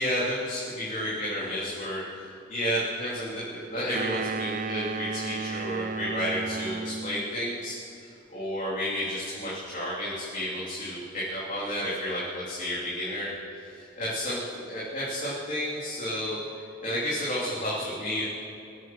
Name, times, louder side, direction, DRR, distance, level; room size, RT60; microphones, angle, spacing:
voice 1, 0.0-2.2 2.5-7.7 8.0-14.4 14.7-16.4 16.8-18.2, equal, 40° left, -8 dB, 3.3 m, -31 dB
sound 1, 3.9-7.3, right 4 dB, 40° right, 0.5 m, -33 dB
27.5 x 9.4 x 5.6 m, 2.7 s
head